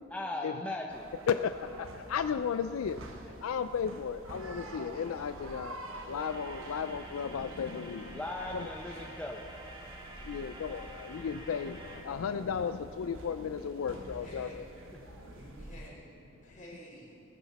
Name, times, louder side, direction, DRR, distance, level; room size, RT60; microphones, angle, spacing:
voice 1, 0.1-1.1 8.1-9.5, left 1 dB, 5° left, 0 dB, 0.7 m, -38 dB
sound 1, 0.9-15.9, right 1 dB, 75° right, 1.1 m, -48 dB
voice 2, 1.3-3.0 3.4-5.8 6.1-8.2 8.5-8.7 10.2-14.6, left 7 dB, 90° left, 10 dB, 0.4 m, -34 dB
sound 2, 6.2-12.0, right 1 dB, 25° right, 1.4 m, -49 dB
voice 3, 13.8-14.6 15.2-16.1 16.4-17.2, left 1 dB, 40° left, -5 dB, 3.9 m, -51 dB
20.0 x 10.5 x 4.1 m, 3.0 s
head